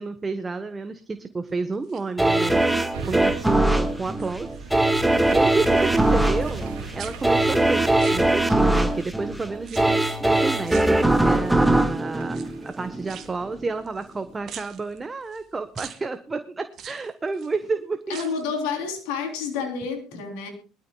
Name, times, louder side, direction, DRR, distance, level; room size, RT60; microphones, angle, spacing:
voice 1, 0.0-4.7 5.1-12.4 12.6-18.2 18.6-18.7 20.1-20.2, right 4 dB, 25° right, 9 dB, 1.1 m, -31 dB
sound 1, 1.7-2.7 3.2-3.6 3.9-4.9 5.2-6.7 7.0-8.8 9.6-10.2 10.6-11.5 12.2-14.2 14.5-15.4 15.8-16.0 16.7-17.5 18.0-18.5 18.8-18.9, right 9 dB, 55° right, 2.0 m, -44 dB
sound 2, 2.2-13.1 13.6-13.7, right 1 dB, 5° right, 1.6 m, -21 dB
sound 3, 2.9-14.4 14.8-14.9, right 4 dB, 75° right, 2.3 m, -39 dB
voice 2, 18.1-20.5, left 5 dB, 75° left, 4 dB, 3.5 m, -29 dB
22.0 x 13.0 x 2.3 m, 0.37 s
hypercardioid pair, 70°, 0 cm